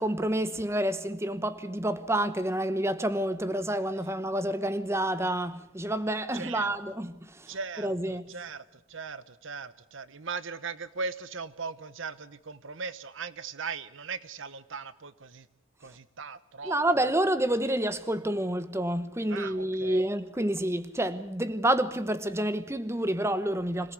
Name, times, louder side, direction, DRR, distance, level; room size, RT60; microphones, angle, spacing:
voice 1, 0.0-7.6 7.8-8.3 16.6-23.9, right 1 dB, 10° right, 1.0 m, -29 dB
voice 2, 6.3-7.0 7.5-15.5 15.8-17.1 19.3-20.1, right 5 dB, 60° right, 0.9 m, -39 dB
26.0 x 18.0 x 8.2 m
head